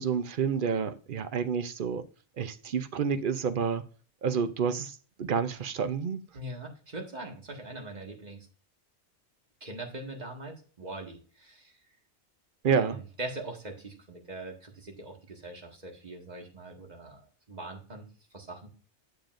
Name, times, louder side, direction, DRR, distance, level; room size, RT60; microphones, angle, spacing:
voice 1, 0.0-2.0 2.4-3.8 4.2-6.2 12.6-13.0, right 6 dB, 55° right, 0.7 m, -29 dB
voice 2, 6.3-8.5 9.6-11.7 12.7-17.2 17.5-18.1 18.3-18.7, right 2 dB, 35° right, 1.8 m, -42 dB
9.3 x 6.8 x 2.5 m
omnidirectional pair, 1.2 m